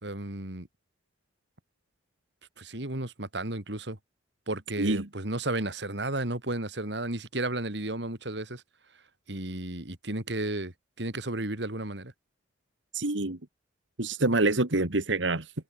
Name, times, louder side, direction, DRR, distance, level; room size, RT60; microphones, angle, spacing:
voice 1, 0.0-0.7 2.6-4.0 4.5-8.6 9.3-12.1, right 2 dB, 65° right, 3.0 m, -33 dB
voice 2, 4.8-5.1 12.9-13.4 14.0-15.5, right 2 dB, 90° right, 2.1 m, -26 dB
head